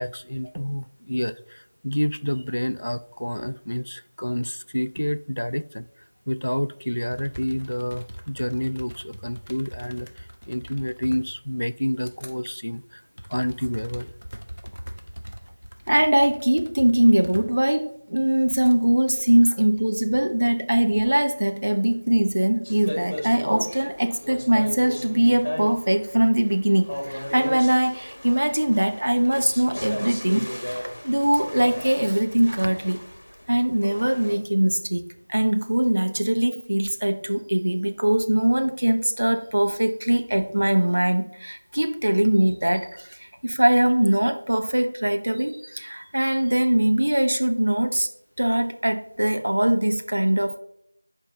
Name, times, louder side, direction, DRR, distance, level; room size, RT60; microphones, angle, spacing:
voice 1, 0.0-5.9 6.3-13.0 13.3-14.1, equal, 75° left, 15 dB, 0.3 m, -29 dB
sound 1, 6.8-6.9 7.1-12.3 12.8-18.8 19.3-19.9 21.1-22.6, equal, 65° right, 0.9 m, -42 dB
voice 2, 15.9-33.0 33.5-35.0 35.3-48.1 48.4-50.6, right 1 dB, 45° right, 6 dB, 0.6 m, -22 dB
sound 2, 22.6-34.4, equal, 35° left, 1.5 m, -35 dB
7.3 x 4.5 x 3.8 m, 0.71 s
figure-of-eight pair, 175°, 0 cm